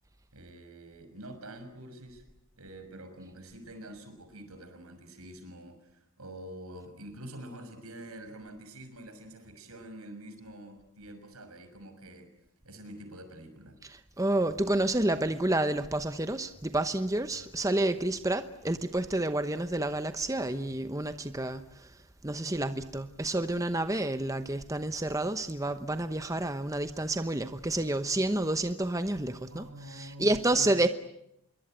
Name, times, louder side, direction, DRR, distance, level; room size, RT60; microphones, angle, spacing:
voice 1, 0.3-2.2 2.6-12.3 12.6-13.8 29.5-30.6, right 1 dB, 90° right, 6.2 m, -46 dB
voice 2, 13.8-21.9 22.2-30.9, right 1 dB, 15° right, 0.9 m, -29 dB
26.0 x 23.0 x 9.1 m
head